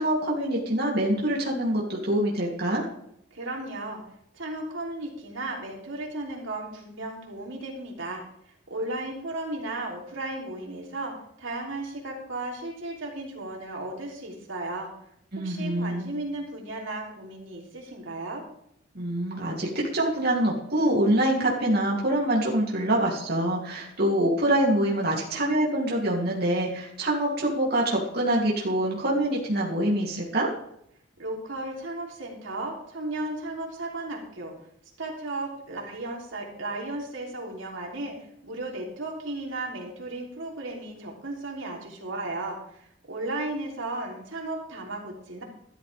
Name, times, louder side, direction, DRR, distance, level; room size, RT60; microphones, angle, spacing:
voice 1, 0.0-2.8 15.3-16.1 18.9-30.5, right 1 dB, 50° right, -3 dB, 3.0 m, -25 dB
voice 2, 3.3-4.0 4.3-11.1 11.4-14.9 15.4-18.4 31.2-34.5 35.0-38.1 38.4-45.4, right 2 dB, 75° right, -1 dB, 3.5 m, -35 dB
13.5 x 13.5 x 3.5 m, 0.72 s
head